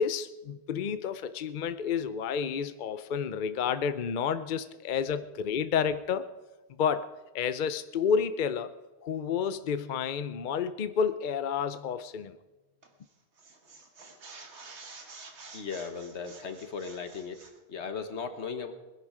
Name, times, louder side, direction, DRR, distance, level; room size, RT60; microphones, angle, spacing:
voice 1, 0.0-6.3 6.8-8.7 9.0-12.4, left 7 dB, 55° left, 12 dB, 0.7 m, -30 dB
sound 1, 12.8-13.1 13.4-17.6, right 3 dB, 85° right, 1.8 m, -49 dB
voice 2, 15.5-18.7, left 5 dB, 85° left, 8 dB, 1.6 m, -37 dB
20.0 x 10.5 x 4.9 m, 1.1 s
omnidirectional pair, 1.1 m